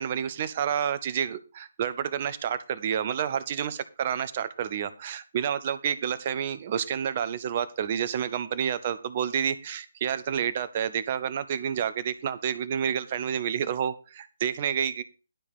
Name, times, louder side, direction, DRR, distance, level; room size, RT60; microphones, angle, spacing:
voice 1, 0.0-15.0, right 8 dB, 40° right, 13 dB, 1.2 m, -29 dB
12.0 x 5.2 x 6.9 m, 0.31 s
figure-of-eight pair, 140°, 0 cm